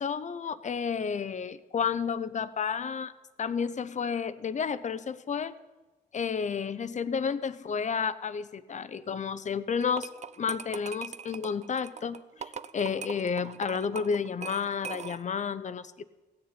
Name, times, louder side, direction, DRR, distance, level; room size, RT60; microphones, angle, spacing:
voice 1, 0.0-3.1 3.4-5.5 6.1-10.1 10.4-16.0, left 6 dB, 45° left, 13 dB, 0.8 m, -31 dB
sound 1, 9.8-15.4, right 6 dB, 40° right, 0.6 m, -41 dB
16.0 x 6.7 x 8.9 m, 1.1 s
cardioid pair, 85°, 17 cm